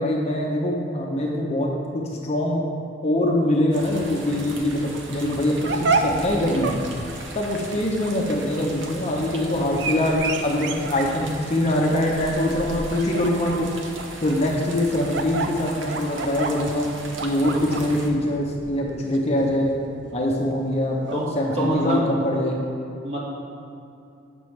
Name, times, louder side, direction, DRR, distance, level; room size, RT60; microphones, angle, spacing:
voice 1, 0.0-2.7 3.0-6.7 7.3-13.7 14.2-16.9 17.2-19.7 20.1-21.0 21.3-22.6, left 1 dB, 35° left, -1 dB, 0.7 m, -23 dB
sound 1, 3.7-18.1, right 2 dB, 80° right, 0.8 m, -38 dB
sound 2, 5.3-21.9, right 3 dB, 65° right, 0.5 m, -31 dB
voice 2, 21.5-22.0 23.0-23.2, equal, 35° right, -7 dB, 1.7 m, -24 dB
8.6 x 6.0 x 3.2 m, 2.7 s
head